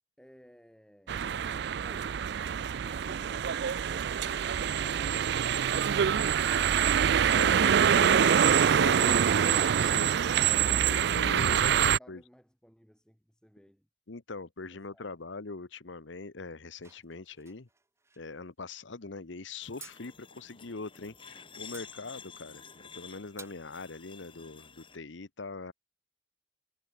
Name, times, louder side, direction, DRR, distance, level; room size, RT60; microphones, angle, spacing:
voice 1, 0.2-2.3 2.8-6.3 11.5-13.9 14.6-15.2, equal, 5° left, 4.1 m, -57 dB
sound 1, 1.1-12.0, right 8 dB, 60° right, 0.4 m, -25 dB
voice 2, 7.3-9.2 9.5-10.1 10.9-11.8 12.1-12.2 14.1-17.7 18.2-25.7, left 3 dB, 70° left, 1.1 m, -42 dB
sound 2, 16.8-18.2 19.8-20.0 21.6-21.9 22.7-22.9 23.4-23.6, right 4 dB, 15° right, 3.7 m, -51 dB
sound 3, 19.6-25.0, left 6 dB, 25° left, 6.1 m, -50 dB
head